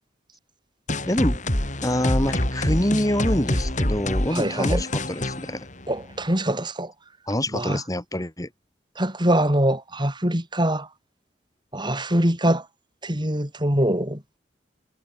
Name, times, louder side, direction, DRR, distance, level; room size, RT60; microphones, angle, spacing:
sound 1, 0.9-6.3, left 1 dB, 40° left, 5.8 m, -26 dB
voice 1, 1.1-1.4 1.8-5.7 7.3-8.5, left 1 dB, 20° left, 3.8 m, -25 dB
voice 2, 4.3-4.8 5.9-6.9 7.5-7.8 9.0-10.9 11.7-12.7 13.0-14.2, right 1 dB, 25° right, 6.6 m, -23 dB
head